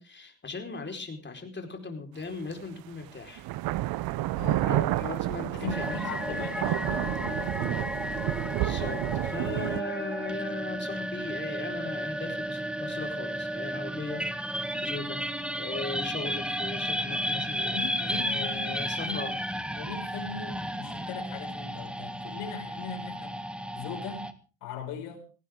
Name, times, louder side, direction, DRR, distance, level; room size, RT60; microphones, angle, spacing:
voice 1, 0.0-3.4 4.6-6.4 8.6-15.2 15.6-17.7 18.2-19.4, left 4 dB, 25° left, 4 dB, 4.8 m, -38 dB
sound 1, 2.5-2.6 3.4-9.8, right 16 dB, 60° right, 0.8 m, -30 dB
voice 2, 4.4-4.9 5.5-7.6 9.4-9.6 17.6-19.3 19.7-23.4 23.7-24.3 24.6-25.2, left 6 dB, 70° left, 3 dB, 5.9 m, -39 dB
sound 2, 5.7-24.3, equal, ahead, 1.6 m, -33 dB
18.0 x 17.5 x 3.8 m, 0.35 s
hypercardioid pair, 75°, 42 cm